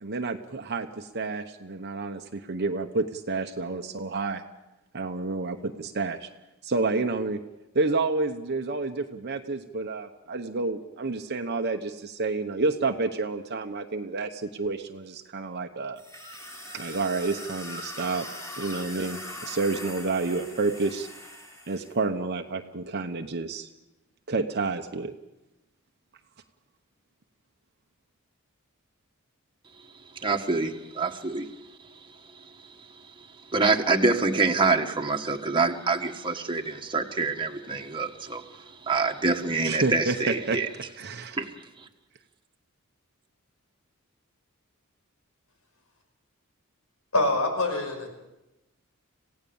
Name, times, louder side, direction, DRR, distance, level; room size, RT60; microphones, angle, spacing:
voice 1, 0.0-4.4 4.9-6.3 6.6-7.4 7.7-16.0 16.7-18.2 18.5-21.1 21.7-23.7 24.3-25.1 39.6-41.4, right 3 dB, 50° right, 5 dB, 1.0 m, -29 dB
sound 1, 16.0-21.9, left 1 dB, 15° left, 3.5 m, -41 dB
voice 2, 30.1-31.5 32.3-32.4 33.5-40.7 41.4-41.5, right 3 dB, 20° right, 2 dB, 1.6 m, -26 dB
voice 3, 47.1-48.1, left 2 dB, 90° left, 4 dB, 5.4 m, -25 dB
27.0 x 16.5 x 7.1 m, 0.98 s
head